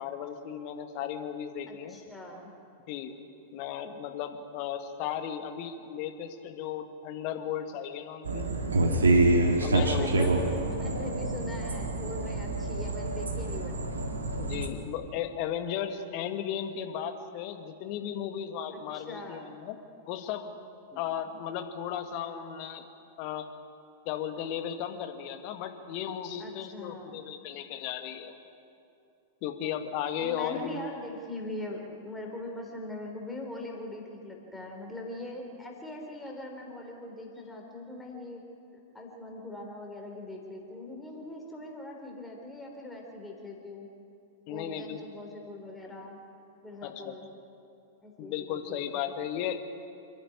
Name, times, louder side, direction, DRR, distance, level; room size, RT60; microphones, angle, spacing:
voice 1, 0.0-2.0 2.9-3.2 3.5-8.5 9.6-10.3 14.4-19.8 20.1-20.5 21.0-22.9 23.2-23.5 24.1-28.3 29.4-30.9 44.5-45.0 46.8-47.1 48.2-49.6, left 9 dB, 45° left, 7 dB, 1.7 m, -35 dB
voice 2, 1.7-2.5 9.7-13.8 18.7-19.6 20.9-21.0 26.4-27.2 30.2-38.4 38.9-43.9 44.5-46.2 46.6-47.3 48.0-49.1, left 1 dB, 10° left, 0 dB, 4.1 m, -41 dB
sound 1, 8.2-14.7, right 2 dB, 75° right, 2.4 m, -27 dB
27.5 x 11.0 x 9.9 m, 2.6 s
figure-of-eight pair, 95°, 0 cm